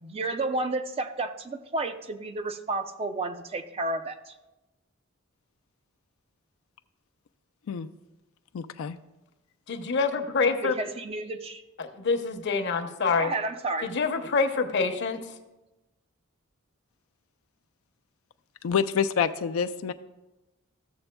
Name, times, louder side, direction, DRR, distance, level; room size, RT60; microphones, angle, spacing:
voice 1, 0.0-4.3 10.6-11.6 13.2-13.9, right 2 dB, 30° right, 8 dB, 0.5 m, -31 dB
voice 2, 8.5-9.0 18.6-19.9, left 7 dB, 80° left, 8 dB, 0.4 m, -27 dB
voice 3, 9.7-10.8 11.8-13.3 13.8-15.2, left 4 dB, 60° left, 5 dB, 0.7 m, -26 dB
14.5 x 6.9 x 2.2 m, 1.0 s
head